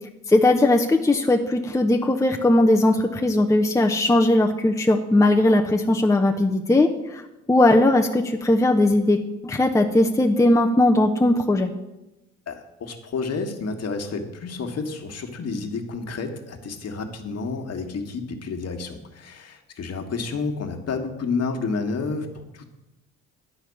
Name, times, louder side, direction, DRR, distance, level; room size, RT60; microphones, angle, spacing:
voice 1, 0.3-7.2 7.5-11.7, left 1 dB, 10° left, 3 dB, 0.9 m, -19 dB
voice 2, 12.5-22.6, left 4 dB, 40° left, 4 dB, 1.7 m, -30 dB
10.0 x 5.7 x 8.4 m, 0.96 s
figure-of-eight pair, 55°, 40 cm